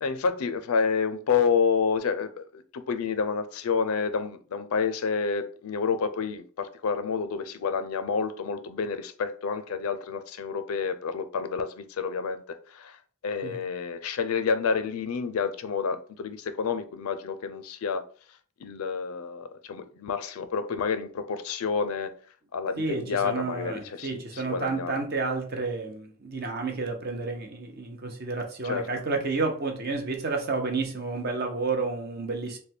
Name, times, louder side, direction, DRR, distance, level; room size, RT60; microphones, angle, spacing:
voice 1, 0.0-18.0 18.6-22.1 22.5-25.0 28.6-28.9, left 5 dB, 90° left, 0.4 m, -29 dB
voice 2, 22.8-32.6, right 3 dB, 45° right, 0.7 m, -30 dB
3.3 x 2.2 x 4.3 m
head